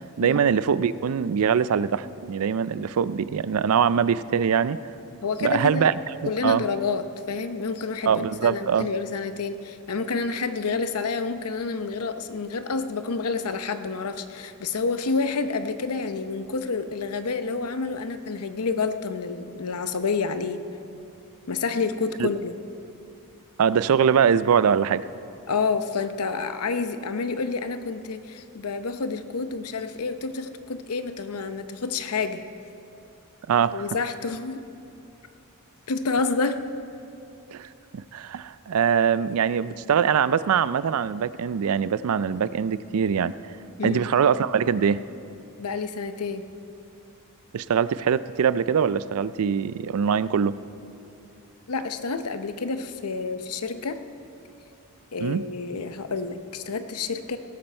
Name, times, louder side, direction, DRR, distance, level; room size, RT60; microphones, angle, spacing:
voice 1, 0.2-4.8 5.4-6.6 8.1-8.9 22.2-22.3 23.6-25.0 33.5-33.8 37.5-37.7 37.9-43.3 43.8-45.0 47.5-50.5 55.2-55.4, right 7 dB, 70° right, 16 dB, 0.4 m, -23 dB
voice 2, 5.2-5.9 6.3-20.6 21.5-22.6 25.5-32.4 33.7-34.6 35.9-36.6 43.8-44.1 45.6-46.4 51.7-54.0 55.1-57.4, left 4 dB, 85° left, 9 dB, 0.7 m, -29 dB
17.5 x 13.0 x 4.4 m, 2.7 s
head